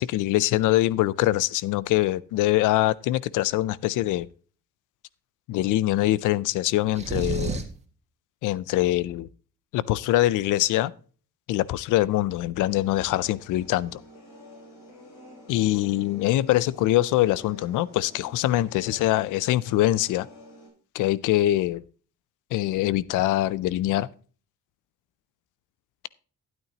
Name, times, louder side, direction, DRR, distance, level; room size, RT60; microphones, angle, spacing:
voice 1, 0.0-4.3 5.5-7.6 8.4-9.3 9.7-10.9 11.5-14.0 15.5-20.3 20.9-21.8 22.5-24.1, left 15 dB, 85° left, 0.5 m, -23 dB
sound 1, 6.9-7.8, right 4 dB, 20° right, 1.8 m, -29 dB
sound 2, 12.6-20.7, equal, 65° left, 5.8 m, -49 dB
12.5 x 8.9 x 2.8 m
cardioid pair, 90°, 30 cm